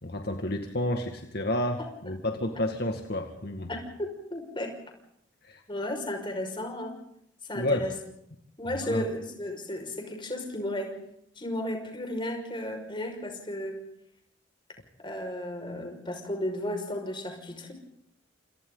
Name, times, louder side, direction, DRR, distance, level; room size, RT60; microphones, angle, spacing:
voice 1, 0.0-1.8 2.0-3.7 5.4-5.6 7.5-7.9 8.8-9.0, left 1 dB, 55° left, 4 dB, 2.1 m, -30 dB
voice 2, 3.7-4.7 5.7-7.0 7.5-7.9 8.6-11.0 11.4-13.8 15.0-17.7, left 1 dB, 25° left, 3 dB, 5.7 m, -34 dB
29.0 x 28.0 x 4.0 m, 0.77 s
head